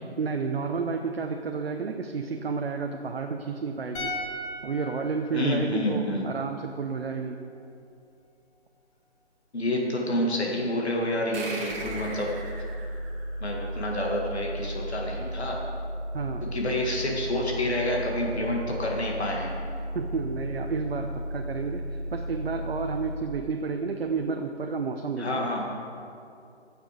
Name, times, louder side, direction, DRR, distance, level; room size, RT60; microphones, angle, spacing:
voice 1, 0.2-4.1 4.6-7.4 16.1-16.5 19.9-25.4, right 5 dB, 60° right, 4 dB, 0.8 m, -31 dB
sound 1, 3.9-7.2 7.4-7.6, left 1 dB, 20° left, 1.8 m, -39 dB
voice 2, 5.3-6.4 9.5-12.3 13.4-15.6 16.4-19.5 25.2-25.6, left 1 dB, 65° left, -1 dB, 2.0 m, -28 dB
sound 2, 11.3-14.4, right 2 dB, 10° right, 0.9 m, -40 dB
sound 3, 11.7-23.2, equal, 50° left, 2.3 m, -35 dB
15.5 x 6.2 x 4.9 m, 2.5 s
figure-of-eight pair, 145°, 35 cm